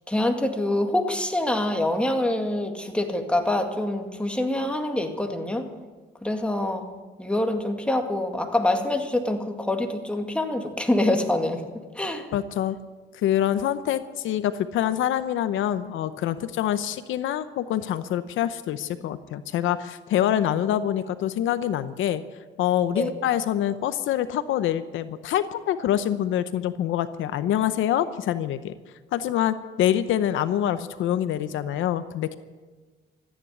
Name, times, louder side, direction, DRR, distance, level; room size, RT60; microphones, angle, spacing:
voice 1, 0.1-5.7 6.2-6.9 7.2-11.6 11.9-12.3 22.9-23.1, left 1 dB, 5° left, 4 dB, 2.1 m, -25 dB
voice 2, 12.3-12.8 13.1-22.2 22.6-28.7 29.1-32.4, left 11 dB, 80° left, 12 dB, 0.7 m, -25 dB
14.0 x 9.8 x 9.5 m, 1.3 s
cardioid pair, 90°, 20 cm